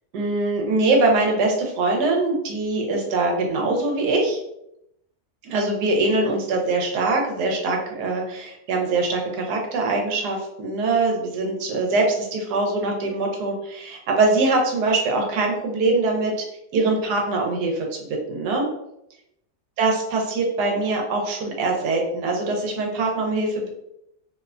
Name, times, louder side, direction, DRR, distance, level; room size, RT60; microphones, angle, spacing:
voice 1, 0.1-4.4 5.4-16.4 16.7-18.7 19.8-23.7, right 3 dB, 90° right, 1 dB, 1.2 m, -23 dB
2.8 x 2.1 x 2.4 m, 0.80 s
omnidirectional pair, 1.7 m